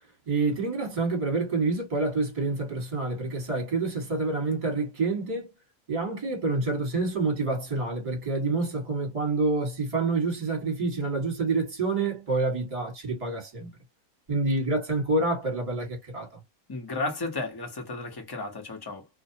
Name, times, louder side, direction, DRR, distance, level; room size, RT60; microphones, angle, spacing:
voice 1, 0.3-5.5 5.9-13.7 14.3-16.3, right 3 dB, 25° right, 1.2 m, -27 dB
voice 2, 16.7-19.1, left 3 dB, 20° left, 0.7 m, -33 dB
2.6 x 2.1 x 2.7 m
omnidirectional pair, 1.6 m